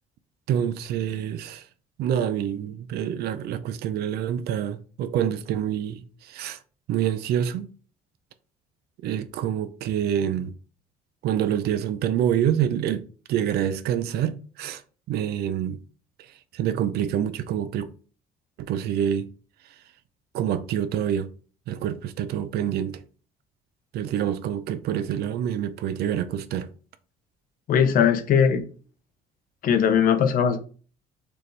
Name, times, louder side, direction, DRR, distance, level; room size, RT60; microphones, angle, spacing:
voice 1, 0.5-1.6 2.0-6.6 6.9-7.7 9.0-10.5 11.2-13.0 13.3-14.8 15.1-15.8 16.5-17.9 18.6-19.3 20.3-21.3 21.7-23.0 23.9-26.7, right 10 dB, 70° right, 0.5 m, -26 dB
voice 2, 27.7-28.6 29.6-30.6, left 7 dB, 55° left, 0.6 m, -19 dB
4.6 x 2.5 x 3.2 m
cardioid pair, 110°, 17 cm